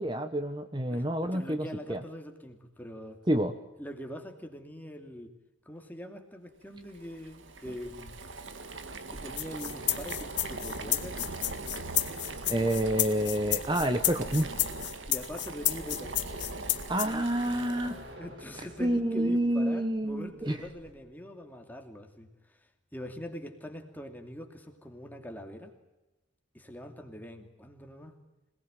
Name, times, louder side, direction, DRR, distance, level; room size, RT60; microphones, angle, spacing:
voice 1, 0.0-2.0 3.3-3.5 12.5-14.5 16.9-18.0 18.8-20.6, right 1 dB, 25° right, 8 dB, 1.1 m, -28 dB
voice 2, 0.9-3.2 3.8-5.3 5.7-8.1 9.1-11.3 15.1-16.2 18.2-25.7 26.5-28.2, equal, 10° left, 4 dB, 2.7 m, -43 dB
Boiling, 6.9-18.1, right 3 dB, 75° right, 2.1 m, -41 dB
sound 1, 9.4-17.1, left 16 dB, 60° left, 1.9 m, -30 dB
sound 2, 13.4-20.9, equal, 60° right, 6.5 m, -52 dB
26.5 x 19.0 x 9.2 m, 1.0 s
head